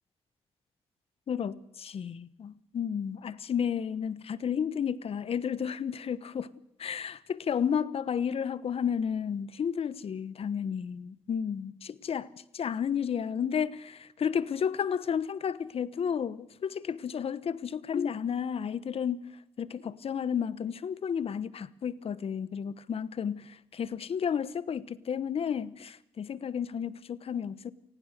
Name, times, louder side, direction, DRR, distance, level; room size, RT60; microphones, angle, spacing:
voice 1, 1.3-6.5 6.8-12.3 12.5-19.2 19.6-27.7, left 7 dB, 65° left, 1.1 m, -32 dB
29.0 x 19.5 x 6.7 m
cardioid pair, 60°, 11 cm